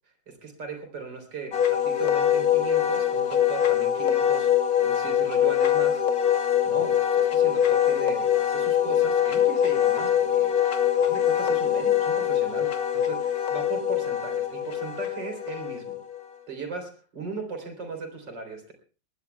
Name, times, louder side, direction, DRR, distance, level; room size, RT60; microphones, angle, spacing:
voice 1, 0.3-4.5 4.8-6.0 6.6-10.6 10.9-16.0 16.5-18.7, right 4 dB, 85° right, 5 dB, 4.4 m, -37 dB
Wind instrument woodwind instrument, 1.5-16.2, left 10 dB, 60° left, 1.6 m, -23 dB
22.5 x 18.5 x 2.3 m, 0.35 s
omnidirectional pair, 1.9 m